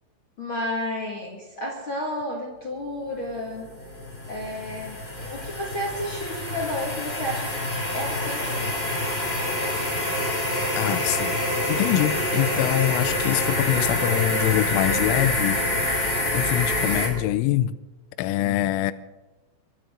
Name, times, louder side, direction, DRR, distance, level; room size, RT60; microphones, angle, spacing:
voice 1, 0.4-3.7 4.3-7.6 7.9-8.8, left 1 dB, 50° left, 1.6 m, -32 dB
sound 1, 3.2-17.1, left 1 dB, 20° left, 1.7 m, -26 dB
voice 2, 10.7-11.4 11.7-15.6 16.3-17.8 18.2-18.9, left 14 dB, 85° left, 3.0 m, -24 dB
25.5 x 12.5 x 3.8 m
omnidirectional pair, 5.8 m